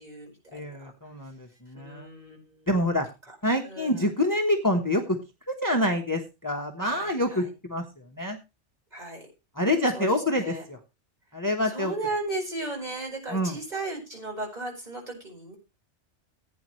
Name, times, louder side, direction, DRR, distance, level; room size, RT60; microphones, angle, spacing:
voice 1, 0.0-0.6 1.7-2.7 3.3-3.4 3.6-4.1 6.8-7.5 8.9-9.3 9.8-10.6 11.6-15.6, right 2 dB, 35° right, -1 dB, 5.0 m, -36 dB
voice 2, 0.5-2.1 2.7-3.1 3.4-5.2 5.5-7.8 8.1-8.4 9.6-10.8 11.3-11.9 13.3-13.6, left 1 dB, 15° left, 4 dB, 1.2 m, -26 dB
16.5 x 9.2 x 3.2 m, 0.26 s
omnidirectional pair, 1.2 m